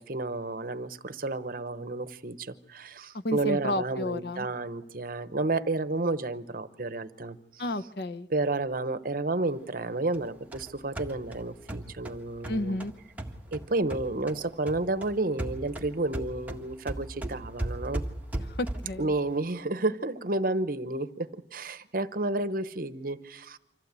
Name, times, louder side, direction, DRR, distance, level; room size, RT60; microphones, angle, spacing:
voice 1, 0.0-7.4 8.3-12.8 13.5-18.0 19.0-23.6, right 2 dB, 50° right, 12 dB, 0.9 m, -31 dB
voice 2, 3.1-4.5 7.6-8.3 12.5-12.9 18.5-19.1, left 1 dB, 60° left, 14 dB, 0.8 m, -31 dB
sound 1, 10.1-14.4 14.7-19.0, right 1 dB, 10° right, 1.6 m, -37 dB
25.5 x 15.0 x 8.2 m, 0.84 s
head